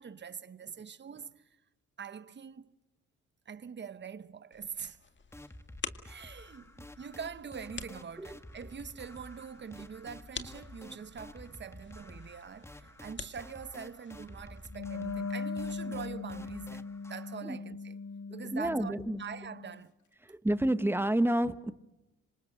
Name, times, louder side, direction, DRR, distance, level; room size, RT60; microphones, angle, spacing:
voice 1, 0.0-1.5 2.0-2.7 3.5-5.0 6.0-18.0 18.3-19.9, right 6 dB, 35° right, 1.1 m, -44 dB
sound 1, 4.5-14.7, left 5 dB, 40° left, 2.0 m, -48 dB
sound 2, 5.3-17.4, left 1 dB, 10° left, 1.3 m, -51 dB
Wind instrument woodwind instrument, 14.7-19.8, left 4 dB, 75° left, 1.9 m, -39 dB
voice 2, 18.5-19.2 20.2-21.7, right 1 dB, 5° right, 1.2 m, -29 dB
27.0 x 25.5 x 6.6 m
cardioid pair, 90°, 30 cm